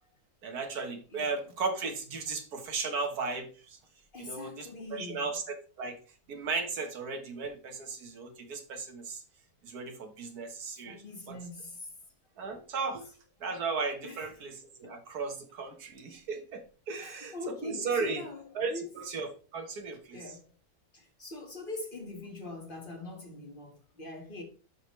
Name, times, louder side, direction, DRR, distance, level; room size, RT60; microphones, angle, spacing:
voice 1, 0.4-3.8 4.2-6.0 6.3-9.2 9.6-11.0 11.3-11.4 12.4-13.1 13.4-17.3 17.6-18.2 18.6-20.2, right 4 dB, 80° right, 1.8 m, -36 dB
voice 2, 4.1-5.3 10.9-11.9 13.5-13.6 14.0-14.3 14.8-14.9 16.9-18.9 20.1-20.5 20.9-24.4, left 2 dB, 35° left, 1.7 m, -43 dB
11.5 x 5.0 x 3.1 m
omnidirectional pair, 1.6 m